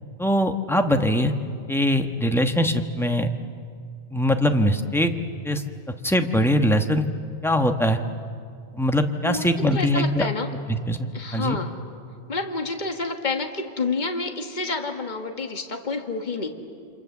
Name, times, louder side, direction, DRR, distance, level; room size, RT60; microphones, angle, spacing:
voice 1, 0.2-1.3 1.7-3.3 4.1-5.1 5.4-5.6 6.0-7.1 7.4-8.0 8.7-10.3 10.7-11.6, equal, ahead, 6 dB, 1.1 m, -22 dB
voice 2, 9.2-10.5 11.1-11.8 12.3-16.5, left 3 dB, 40° left, 5 dB, 1.7 m, -29 dB
28.5 x 26.0 x 7.2 m, 2.3 s
omnidirectional pair, 1.1 m